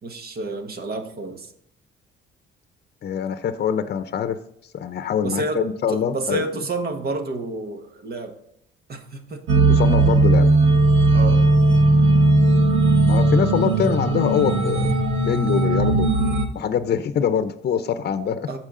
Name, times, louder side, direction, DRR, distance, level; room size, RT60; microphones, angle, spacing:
voice 1, 0.0-1.5 5.2-5.6 5.9-8.3 8.9-9.5 11.1-11.4 18.5-18.6, right 2 dB, 50° right, 5 dB, 1.5 m, -29 dB
voice 2, 3.0-4.4 4.7-6.4 9.7-10.5 13.1-14.9 15.2-16.1 16.5-18.5, left 8 dB, 55° left, 10 dB, 0.7 m, -24 dB
sound 1, 9.5-16.5, right 2 dB, 85° right, 1.4 m, -17 dB
14.0 x 4.7 x 3.8 m, 0.73 s
cardioid pair, 90°, 20 cm